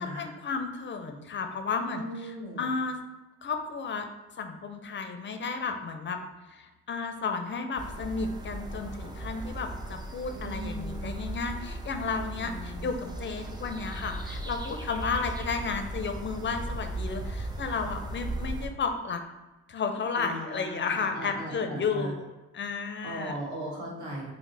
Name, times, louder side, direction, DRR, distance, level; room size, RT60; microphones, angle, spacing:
voice 1, 0.0-3.0 3.4-4.1 4.4-6.2 6.5-19.2 19.7-23.4, left 5 dB, 40° left, 6 dB, 0.4 m, -33 dB
voice 2, 1.9-2.7 10.3-11.2 12.4-13.0 20.2-22.1 23.0-24.3, right 1 dB, 75° right, -3 dB, 1.5 m, -38 dB
sound 1, 7.8-18.7, right 1 dB, 15° right, 0.5 m, -37 dB
5.1 x 2.0 x 3.2 m, 1.1 s
cardioid pair, 90°, 30 cm